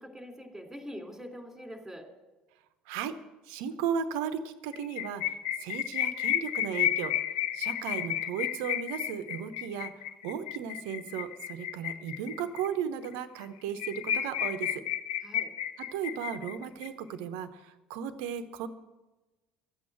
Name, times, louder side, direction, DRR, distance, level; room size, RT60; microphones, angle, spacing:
voice 1, 0.0-2.1 15.2-15.5, equal, 5° right, 3 dB, 3.1 m, -44 dB
voice 2, 2.9-3.2 3.4-7.1 7.5-14.8 15.8-18.7, right 8 dB, 60° right, 11 dB, 0.9 m, -35 dB
sound 1, 4.7-12.7 13.0-13.1 13.4-13.5 13.8-16.9, left 11 dB, 70° left, 0.7 m, -32 dB
13.0 x 8.4 x 7.8 m, 1.1 s
figure-of-eight pair, 60°, 4 cm